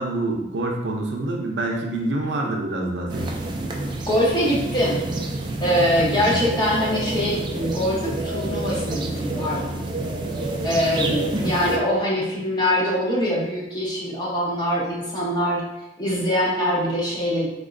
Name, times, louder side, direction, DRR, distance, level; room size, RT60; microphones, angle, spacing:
voice 1, 0.0-3.4 6.2-6.4, right 2 dB, 75° right, 1 dB, 0.5 m, -26 dB
sound 1, 3.1-11.8, right 2 dB, 25° right, 0.3 m, -28 dB
voice 2, 4.1-5.0 5.6-9.8 10.6-15.6 16.0-17.5, equal, 25° left, -5 dB, 0.8 m, -23 dB
3.5 x 3.0 x 2.5 m, 0.96 s
head